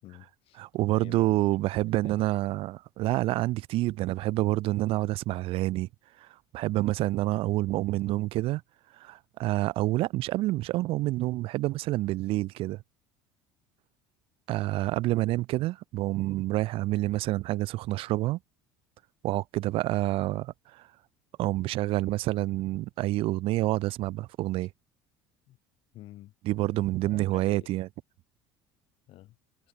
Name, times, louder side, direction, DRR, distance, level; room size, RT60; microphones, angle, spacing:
voice 1, 0.0-1.5 2.0-2.3 24.6-24.7 25.5-25.6 25.9-26.3 26.7-27.8 29.1-29.4, left 15 dB, 60° left, 5.5 m, -50 dB
voice 2, 0.6-5.9 6.2-6.3 6.5-8.6 9.0-12.8 14.5-18.4 19.2-20.9 21.4-24.7 26.5-27.9, right 17 dB, 60° right, 0.4 m, -28 dB
supercardioid pair, 85°, 11 cm